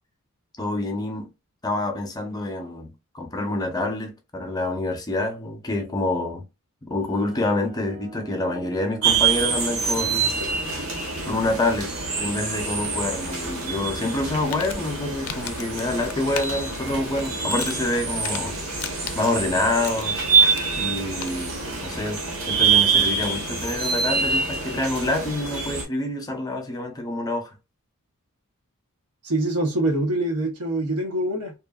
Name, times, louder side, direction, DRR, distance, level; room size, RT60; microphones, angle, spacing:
voice 1, 0.6-1.3 1.6-6.4 6.9-10.3 11.2-11.9 12.2-18.6 19.2-20.2 20.8-22.2 22.5-27.5, left 2 dB, 15° left, 0.6 m, -27 dB
sound 1, 7.0-14.5, right 5 dB, 25° right, 0.3 m, -45 dB
sound 2, 9.0-25.8, right 5 dB, 65° right, 0.9 m, -25 dB
Crumpling crinkling, 14.2-21.6, left 9 dB, 75° left, 0.4 m, -39 dB
voice 2, 29.2-31.5, right 1 dB, 85° right, 0.7 m, -24 dB
2.9 x 2.2 x 2.3 m
head